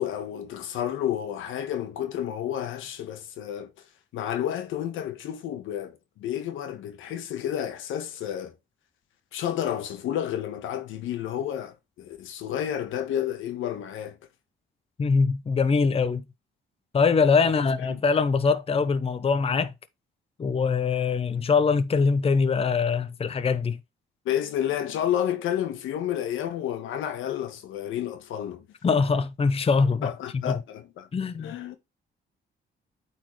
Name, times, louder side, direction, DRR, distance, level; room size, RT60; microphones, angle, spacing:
voice 1, 0.0-3.7 4.1-8.5 9.3-14.2 17.6-18.0 24.2-28.7 30.0-31.1 31.4-31.8, left 10 dB, 85° left, 1.3 m, -31 dB
voice 2, 15.0-16.2 16.9-19.7 20.4-23.8 28.8-30.6 31.1-31.5, left 5 dB, 30° left, 0.7 m, -23 dB
8.7 x 4.2 x 3.2 m
cardioid pair, 90°, 20 cm